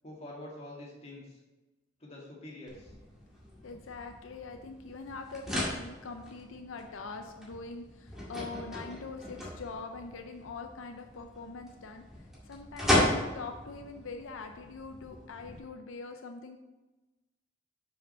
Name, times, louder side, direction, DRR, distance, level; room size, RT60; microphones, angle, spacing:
voice 1, 0.0-1.4 2.0-2.9, left 1 dB, 35° left, -4 dB, 2.1 m, -46 dB
sound 1, 2.7-15.6, left 1 dB, ahead, 1.9 m, -36 dB
voice 2, 3.6-12.0 12.4-16.6, left 4 dB, 85° left, 5 dB, 0.6 m, -43 dB
7.0 x 5.0 x 5.5 m, 1.1 s
head